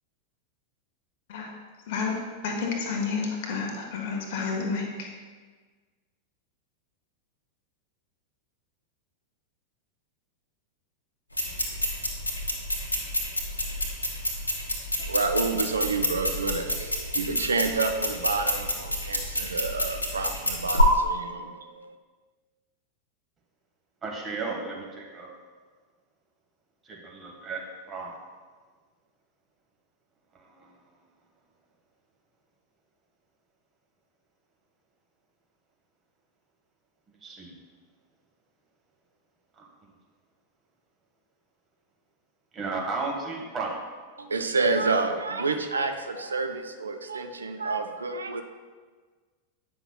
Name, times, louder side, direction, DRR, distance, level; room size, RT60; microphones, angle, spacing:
voice 1, 1.9-5.1, left 4 dB, 50° left, 1 dB, 1.1 m, -30 dB
sound 1, 11.3-20.8, left 1 dB, 80° left, 1.1 m, -28 dB
voice 2, 15.0-22.0 44.2-48.4, right 3 dB, 75° right, 6 dB, 0.4 m, -29 dB
voice 3, 24.0-25.3 26.8-28.2 30.3-30.8 37.2-37.5 39.6-39.9 42.5-43.8, right 3 dB, 20° right, -1 dB, 1.4 m, -34 dB
9.3 x 5.7 x 2.2 m, 1.5 s
figure-of-eight pair, 90°, 0 cm